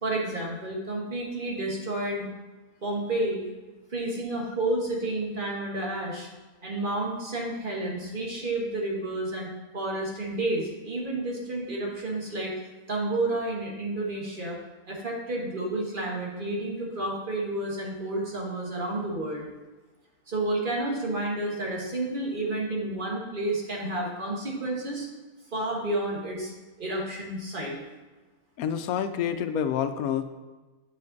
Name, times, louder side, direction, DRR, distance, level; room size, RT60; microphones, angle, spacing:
voice 1, 0.0-2.2 2.8-3.4 3.9-6.3 6.6-12.5 12.9-14.6 14.9-19.4 20.3-25.1 25.5-26.5 26.8-27.8, right 2 dB, 35° right, -2 dB, 1.6 m, -30 dB
voice 2, 28.6-30.2, left 8 dB, 80° left, 10 dB, 1.1 m, -28 dB
8.9 x 5.3 x 4.0 m, 1.2 s
omnidirectional pair, 1.5 m